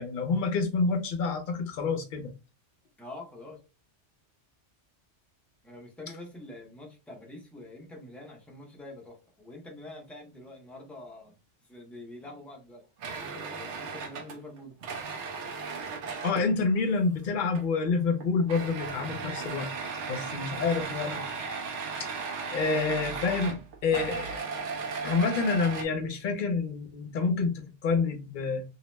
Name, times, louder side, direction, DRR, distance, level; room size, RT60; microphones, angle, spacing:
voice 1, 0.0-2.3 16.2-19.7 20.1-21.2 22.0-22.1 22.5-24.4 25.0-28.6, left 4 dB, 55° left, 0.7 m, -28 dB
voice 2, 3.0-3.6 5.6-11.4 11.6-12.8 13.2-14.7, left 2 dB, ahead, 0.3 m, -45 dB
sound 1, 13.0-16.5 17.5-17.9 18.2-25.8, right 5 dB, 80° right, 0.9 m, -36 dB
2.7 x 2.1 x 3.0 m
omnidirectional pair, 1.2 m